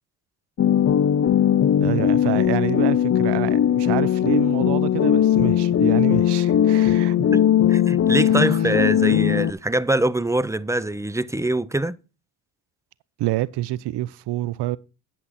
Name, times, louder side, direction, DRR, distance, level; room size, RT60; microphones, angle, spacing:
sound 1, 0.6-9.5, left 10 dB, 40° left, 0.6 m, -19 dB
voice 1, 1.8-7.2 8.3-8.4 13.2-14.8, right 15 dB, 80° right, 0.6 m, -27 dB
voice 2, 7.7-12.0, right 1 dB, 10° right, 0.5 m, -24 dB
10.0 x 7.5 x 4.1 m
cardioid pair, 80°, 41 cm